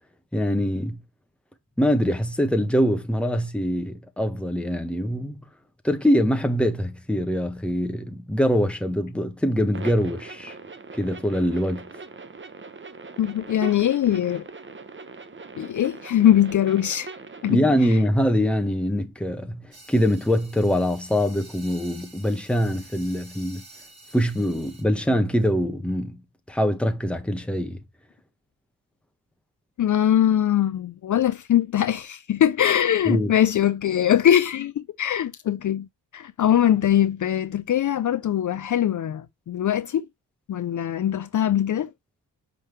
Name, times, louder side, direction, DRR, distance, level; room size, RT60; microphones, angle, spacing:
voice 1, 0.3-1.0 1.8-5.3 5.8-10.5 11.0-11.9 17.4-23.6 24.1-26.2 26.5-27.8 33.1-33.3, equal, 5° left, 1.3 m, -23 dB
sound 1, 9.7-17.5, right 3 dB, 30° right, 1.0 m, -41 dB
voice 2, 13.2-14.4 15.6-17.1 17.4-17.6 17.9-18.0 29.8-35.9 36.1-40.1 40.5-41.9, left 10 dB, 50° left, 0.6 m, -22 dB
sound 2, 19.7-24.8, right 2 dB, 50° right, 4.3 m, -49 dB
5.5 x 5.4 x 3.2 m
cardioid pair, 70°, 39 cm